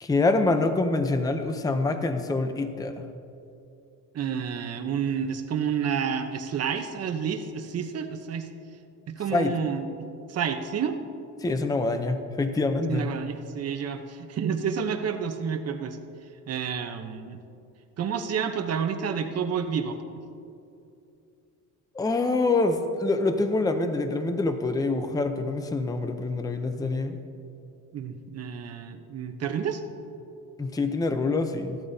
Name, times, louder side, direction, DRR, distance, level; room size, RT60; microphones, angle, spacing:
voice 1, 0.0-3.0 9.3-9.6 11.4-13.1 21.9-27.2 30.6-31.8, left 3 dB, 10° left, 8 dB, 0.6 m, -26 dB
voice 2, 4.1-8.5 9.1-9.9 10.3-11.0 12.9-16.0 16.5-17.4 18.0-20.0 27.9-29.8, right 7 dB, 50° right, 6 dB, 0.9 m, -29 dB
16.0 x 12.0 x 2.7 m, 2.7 s
cardioid pair, 135°, 33 cm